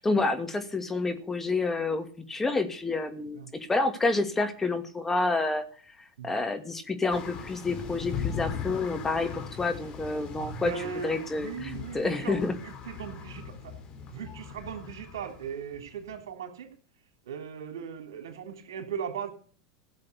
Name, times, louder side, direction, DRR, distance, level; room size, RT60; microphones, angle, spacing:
voice 1, 0.0-5.6 6.2-12.6, left 3 dB, 15° left, 7 dB, 2.3 m, -29 dB
sound 1, 7.1-16.2, left 6 dB, 40° left, 3.5 m, -39 dB
voice 2, 10.2-13.8 14.1-16.7 17.2-19.3, right 7 dB, 80° right, 5 dB, 3.3 m, -38 dB
16.0 x 7.5 x 8.3 m, 0.43 s
hypercardioid pair, 95°, 2 cm